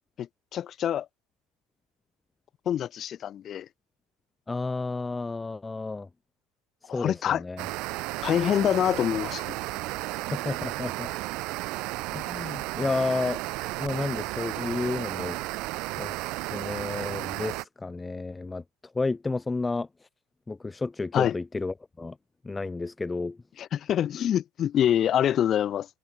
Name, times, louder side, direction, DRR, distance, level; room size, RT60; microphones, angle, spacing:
voice 1, 0.2-1.1 2.7-3.7 6.9-7.4 8.2-9.6 21.1-21.4 23.6-25.9, left 10 dB, 35° left, 2.0 m, -26 dB
voice 2, 4.5-6.1 6.9-7.7 10.3-11.1 12.1-13.4 13.8-15.6 16.0-18.6 18.9-19.9 20.5-22.2 22.4-23.4, left 3 dB, 10° left, 1.1 m, -31 dB
sound 1, 7.6-17.7, right 22 dB, 55° right, 4.6 m, -33 dB
cardioid pair, 150°, 0 cm